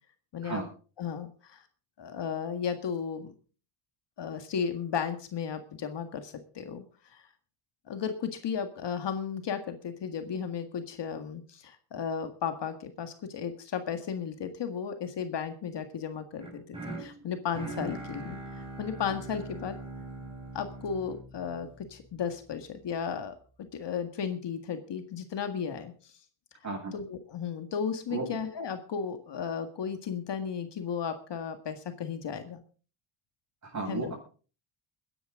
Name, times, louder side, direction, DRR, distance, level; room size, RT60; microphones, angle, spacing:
voice 1, 0.3-0.6 1.0-1.6 2.0-3.3 4.2-6.8 7.1-7.2 7.9-18.4 18.8-19.8 20.5-23.3 23.7-26.1 26.9-32.6 33.9-34.1, left 7 dB, 55° left, 8 dB, 1.9 m, -34 dB
sound 1, 16.4-22.5, right 2 dB, 10° right, 5.4 m, -42 dB
voice 2, 33.6-34.2, right 3 dB, 35° right, 1 dB, 7.8 m, -33 dB
22.0 x 10.0 x 3.7 m, 0.38 s
cardioid pair, 110°, 50 cm